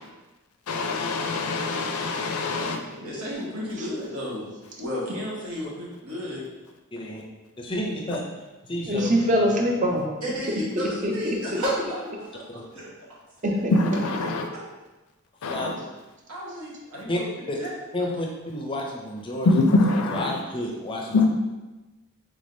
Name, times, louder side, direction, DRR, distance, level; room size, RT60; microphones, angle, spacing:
voice 1, 0.7-2.8 13.7-14.5 15.4-15.7 19.5-20.3 21.1-21.3, left 2 dB, 80° left, 4 dB, 0.4 m, -23 dB
voice 2, 2.5-4.5 4.8-6.4 10.2-12.4 12.7-12.9 13.5-13.6 14.5-14.6 15.4-15.7 16.3-17.7, equal, 80° right, -6 dB, 1.1 m, -33 dB
voice 3, 6.9-7.2 7.6-8.2 8.7-9.1 12.5-12.6 15.5-15.7 17.1-17.2 17.5-17.6 17.9-19.6 20.1-21.3, left 1 dB, 25° left, 0 dB, 0.4 m, -30 dB
voice 4, 8.9-10.2 10.8-11.6 13.4-13.8, equal, 35° right, 0 dB, 0.5 m, -24 dB
3.5 x 3.3 x 2.6 m, 1.1 s
head